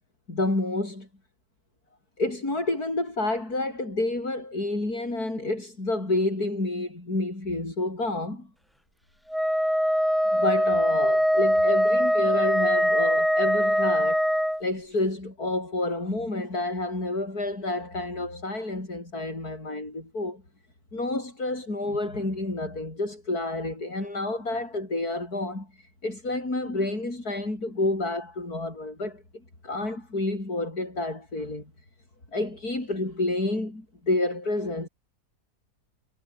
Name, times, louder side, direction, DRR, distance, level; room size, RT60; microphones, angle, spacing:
voice 1, 0.3-1.1 2.2-8.5 10.3-14.2 14.6-20.4 20.9-29.2 29.6-31.7 32.3-34.9, left 2 dB, 60° left, 7.8 m, -29 dB
Wind instrument woodwind instrument, 9.3-14.6, equal, ahead, 2.7 m, -22 dB
omnidirectional pair, 1.8 m